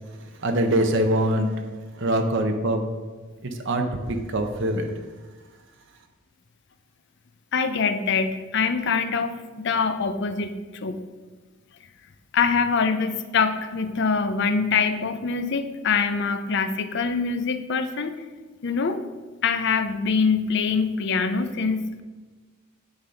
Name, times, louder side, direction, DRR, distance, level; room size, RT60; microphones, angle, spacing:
voice 1, 0.4-1.5 2.0-2.8 3.4-4.9, right 1 dB, 60° right, 5 dB, 0.8 m, -23 dB
voice 2, 7.5-10.5 10.8-11.0 12.3-18.1 18.6-19.0 19.4-22.0, left 5 dB, 55° left, 10 dB, 0.6 m, -24 dB
9.5 x 4.0 x 5.7 m, 1.3 s
head